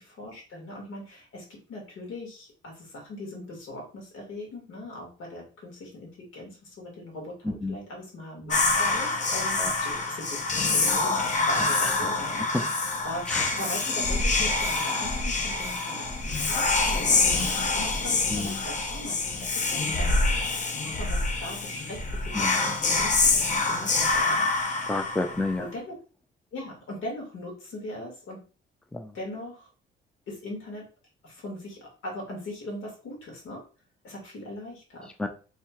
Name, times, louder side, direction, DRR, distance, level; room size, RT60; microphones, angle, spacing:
voice 1, 0.0-12.7 13.0-20.4 20.8-24.5 25.6-25.9 26.5-28.4 29.1-29.7 30.3-30.9 31.2-33.6 34.0-35.1, left 1 dB, 85° left, -1 dB, 2.0 m, -40 dB
Whispering, 8.5-25.6, left 3 dB, 40° left, 0.9 m, -26 dB
voice 2, 11.7-12.0 12.5-12.6 13.3-13.5 18.3-18.6 22.3-22.5 24.9-25.6 28.9-29.1 35.2-35.3, left 2 dB, 5° left, 7 dB, 0.4 m, -30 dB
4.3 x 3.5 x 2.4 m, 0.37 s
cardioid pair, 90°, 20 cm